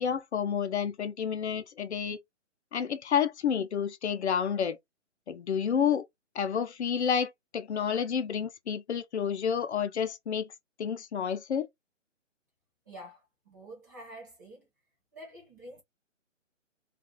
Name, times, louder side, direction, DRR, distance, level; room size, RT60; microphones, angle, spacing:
voice 1, 0.0-2.2 2.7-4.8 5.3-6.1 6.3-10.5 10.8-11.7, left 7 dB, 60° left, 0.5 m, -30 dB
voice 2, 12.9-14.6 15.1-15.8, right 1 dB, 15° right, 0.6 m, -48 dB
2.4 x 2.2 x 3.6 m
hypercardioid pair, 160°, 38 cm